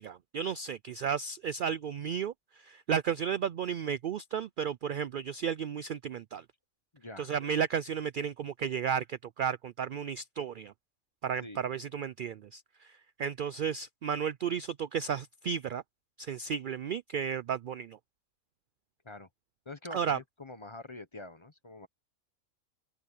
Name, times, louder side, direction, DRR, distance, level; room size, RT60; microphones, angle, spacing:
voice 1, 0.0-6.4 7.2-10.7 11.2-15.8 16.2-18.0 19.9-20.2, right 7 dB, 75° right, 0.4 m, -33 dB
voice 2, 6.9-7.3 11.4-11.6 19.0-19.3 19.7-21.9, left 2 dB, 25° left, 0.9 m, -45 dB
open air
omnidirectional pair, 1.4 m